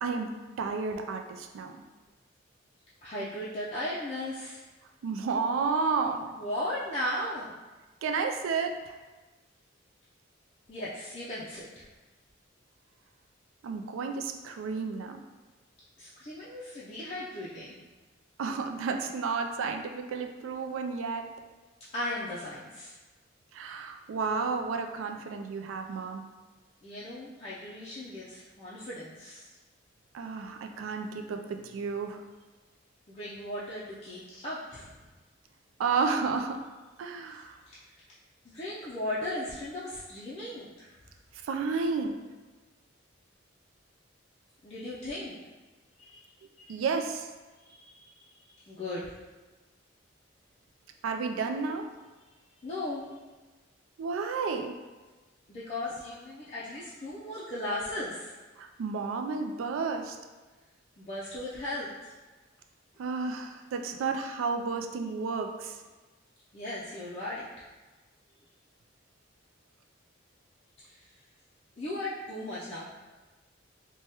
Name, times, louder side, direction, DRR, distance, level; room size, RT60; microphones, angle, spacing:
voice 1, 0.0-1.8 5.0-6.3 8.0-9.0 13.6-15.2 18.4-21.3 23.5-26.2 30.1-32.2 35.8-36.6 37.0-37.6 41.4-42.1 46.7-47.3 51.0-51.9 54.0-54.8 58.6-60.2 63.0-65.8, right 4 dB, 85° right, 4 dB, 0.3 m, -32 dB
voice 2, 3.0-4.6 6.3-7.5 10.7-11.8 16.0-17.8 21.9-22.9 26.8-29.6 33.1-35.0 37.7-37.8 38.4-40.9 44.6-45.4 46.0-46.8 47.6-49.1 52.6-53.2 55.5-58.3 61.0-62.1 66.5-67.6 70.8-71.0 71.8-72.8, left 1 dB, 30° left, -9 dB, 0.4 m, -37 dB
3.3 x 2.2 x 2.8 m, 1.3 s
head